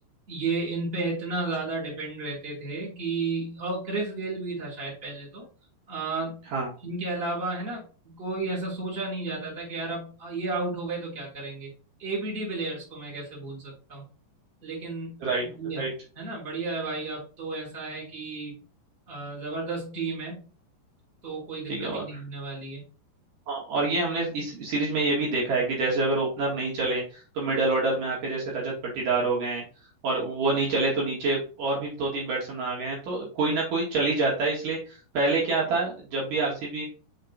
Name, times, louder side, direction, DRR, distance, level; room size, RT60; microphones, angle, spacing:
voice 1, 0.3-5.4 5.9-6.4 6.8-11.7 12.0-14.0 14.6-15.9 16.1-18.6 19.1-20.4 21.2-22.8, right 3 dB, 15° right, -4 dB, 3.0 m, -33 dB
voice 2, 21.7-22.0 23.5-29.6 30.0-34.8 35.1-36.9, right 3 dB, 60° right, -4 dB, 3.3 m, -27 dB
6.7 x 4.7 x 4.1 m, 0.36 s
omnidirectional pair, 4.7 m